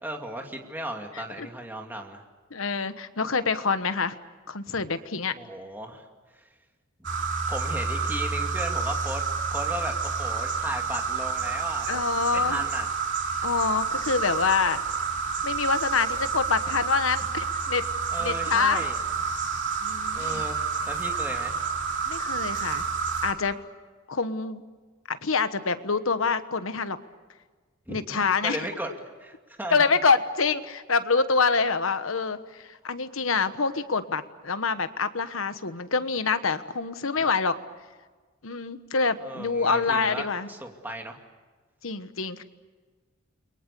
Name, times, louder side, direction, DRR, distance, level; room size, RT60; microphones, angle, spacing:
voice 1, 0.0-2.2 4.7-4.9 5.4-6.1 6.3-6.5 7.5-9.2 9.5-13.0 18.1-19.0 20.1-21.6 27.9-28.9 29.2-29.9 39.2-41.2, right 1 dB, 10° right, 2 dB, 2.5 m, -36 dB
voice 2, 2.5-4.1 4.5-5.3 11.9-12.6 13.4-14.8 15.4-17.9 18.2-18.9 19.8-20.4 22.1-22.8 23.2-23.6 24.1-24.6 25.1-27.0 27.9-28.7 29.7-32.4 32.8-37.5 38.4-40.5 41.8-42.4, left 4 dB, 75° left, 11 dB, 1.3 m, -26 dB
sound 1, 7.0-23.3, right 5 dB, 60° right, 3.2 m, -29 dB
29.5 x 22.5 x 6.9 m, 1.4 s
head